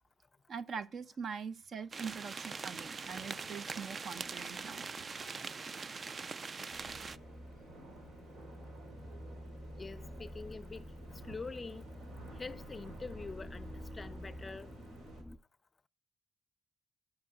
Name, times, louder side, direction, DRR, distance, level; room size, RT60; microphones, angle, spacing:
voice 1, 0.5-4.8, right 6 dB, 60° right, 0.7 m, -43 dB
sound 1, 1.9-7.2, right 4 dB, 40° right, 0.3 m, -42 dB
sound 2, 2.7-15.2, right 2 dB, 85° right, 3.4 m, -55 dB
sound 3, 6.7-15.4, equal, ahead, 1.4 m, -49 dB
voice 2, 9.7-10.9 11.3-11.9 12.4-13.7 13.9-14.7, left 4 dB, 25° left, 0.5 m, -45 dB
11.5 x 6.0 x 3.9 m
cardioid pair, 100°, 0 cm